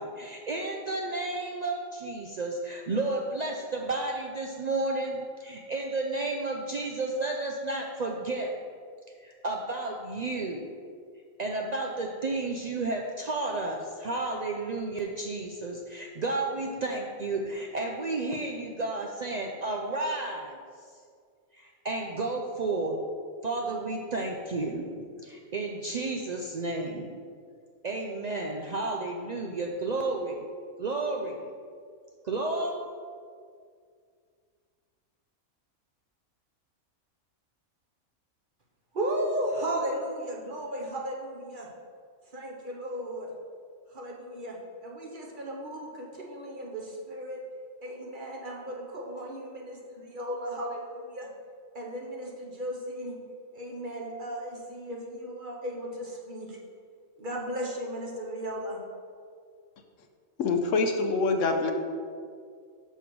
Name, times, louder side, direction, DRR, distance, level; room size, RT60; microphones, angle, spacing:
voice 1, 0.0-8.6 9.2-10.7 11.4-20.6 21.5-23.0 23.4-27.2 27.8-30.5 30.8-31.5 32.2-32.7, right 2 dB, 75° right, 1 dB, 0.3 m, -32 dB
voice 2, 38.9-41.7 42.3-43.3 43.9-47.4 47.8-51.3 51.7-53.1 53.5-56.6 57.2-58.8, right 1 dB, 40° right, -1 dB, 1.2 m, -35 dB
voice 3, 60.4-61.7, left 3 dB, 70° left, 5 dB, 1.0 m, -25 dB
6.3 x 5.6 x 6.0 m, 2.2 s
omnidirectional pair, 1.5 m